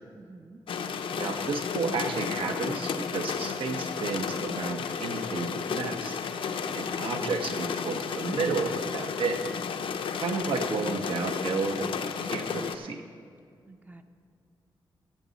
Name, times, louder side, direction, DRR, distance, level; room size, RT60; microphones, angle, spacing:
voice 1, 0.2-0.6 13.7-14.0, right 3 dB, 20° right, 7 dB, 0.6 m, -49 dB
sound 1, 0.7-12.7, left 6 dB, 85° left, 0.6 m, -33 dB
voice 2, 1.1-6.2 6.7-9.4 10.2-13.0, right 4 dB, 75° right, 5 dB, 1.0 m, -32 dB
15.5 x 8.1 x 4.1 m, 2.3 s
wide cardioid pair, 165°, 9 cm